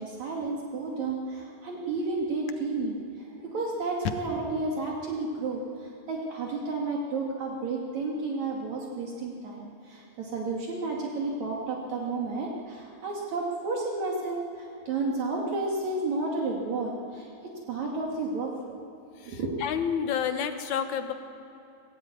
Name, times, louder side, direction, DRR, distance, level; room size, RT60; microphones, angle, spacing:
voice 1, 0.0-17.3 17.7-18.8 19.3-19.5, right 3 dB, 70° right, -2 dB, 3.5 m, -32 dB
voice 2, 19.2-21.1, left 8 dB, 70° left, 7 dB, 2.6 m, -30 dB
24.0 x 17.0 x 9.4 m, 2.9 s
omnidirectional pair, 3.4 m